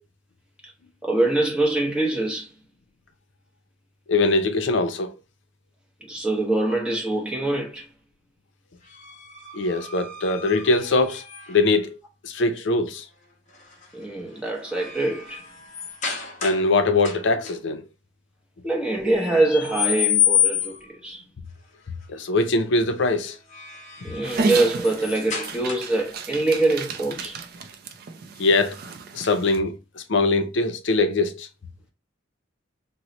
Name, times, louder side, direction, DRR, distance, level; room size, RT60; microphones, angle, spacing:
voice 1, 1.0-2.5 6.1-7.9 13.9-15.4 18.6-21.2 24.0-27.4, right 2 dB, 5° right, 0.8 m, -24 dB
voice 2, 4.1-5.1 9.5-11.2 11.5-12.0 12.2-13.1 16.4-17.8 22.1-23.4 28.4-28.8 29.1-31.5, left 3 dB, 65° left, 0.5 m, -22 dB
sound 1, 8.9-11.8 13.5-13.9 14.3-16.7 17.0-17.5 19.0-20.9 23.2-26.1, left 8 dB, 40° left, 0.8 m, -29 dB
Dog, 24.2-29.6, right 4 dB, 50° right, 0.4 m, -31 dB
3.0 x 2.1 x 3.8 m
head